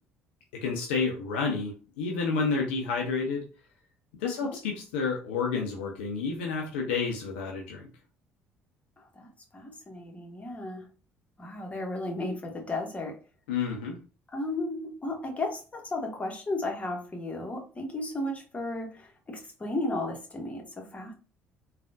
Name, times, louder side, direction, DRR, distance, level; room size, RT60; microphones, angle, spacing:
voice 1, 0.5-3.4 4.2-7.9 13.5-14.0, left 4 dB, 70° left, 1 dB, 0.5 m, -30 dB
voice 2, 4.2-4.6 9.0-10.9 11.4-13.2 14.3-21.1, left 2 dB, 20° left, 1 dB, 1.2 m, -34 dB
3.5 x 2.4 x 2.5 m, 0.36 s
figure-of-eight pair, 50°, 6 cm